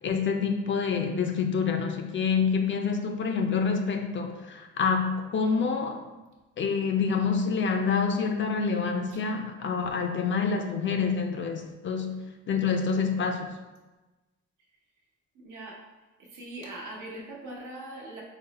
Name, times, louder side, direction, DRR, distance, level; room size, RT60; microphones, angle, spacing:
voice 1, 0.0-6.0 6.6-12.2 12.5-13.5, left 5 dB, 40° left, 5 dB, 0.4 m, -27 dB
voice 2, 15.3-15.8 16.2-18.2, right 1 dB, 75° right, -3 dB, 1.0 m, -41 dB
3.9 x 2.0 x 4.0 m, 1.1 s
cardioid pair, 90°, 30 cm